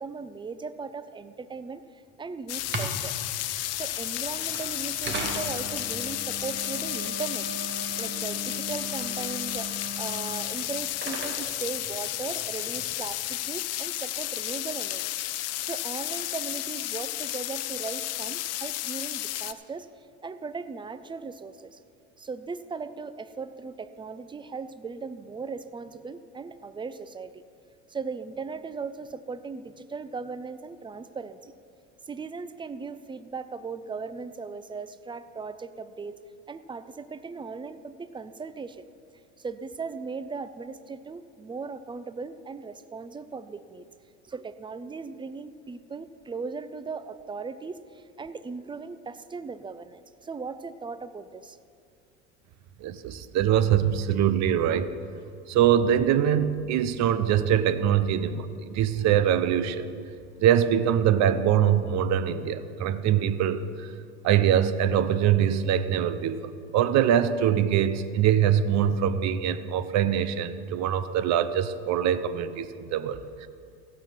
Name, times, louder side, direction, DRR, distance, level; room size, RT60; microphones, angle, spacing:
voice 1, 0.0-3.1 3.7-7.5 8.0-15.0 15.6-21.8 22.2-27.4 27.9-31.5 32.1-36.2 36.5-38.8 39.4-43.8 44.2-51.6, right 4 dB, 15° right, 13 dB, 0.6 m, -38 dB
sound 1, 2.5-19.5, left 15 dB, 45° left, 0.6 m, -32 dB
sound 2, 2.5-12.8, right 2 dB, 30° right, 2.1 m, -38 dB
voice 2, 52.8-54.9 55.5-59.9 60.4-63.9 64.2-73.5, right 9 dB, 50° right, 13 dB, 0.9 m, -23 dB
16.0 x 6.2 x 7.4 m, 2.4 s
hypercardioid pair, 85°, 35 cm